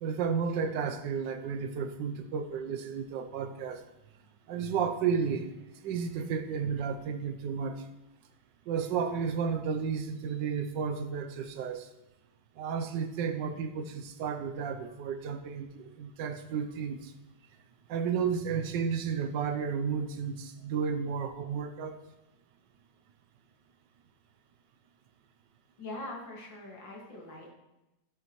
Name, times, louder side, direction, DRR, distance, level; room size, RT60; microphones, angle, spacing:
voice 1, 0.0-3.8 4.5-7.8 8.7-11.9 12.6-17.1 17.9-22.0, right 6 dB, 75° right, 7 dB, 1.4 m, -32 dB
voice 2, 25.8-27.5, left 2 dB, 75° left, -2 dB, 2.7 m, -42 dB
13.5 x 7.0 x 3.1 m, 0.97 s
omnidirectional pair, 2.0 m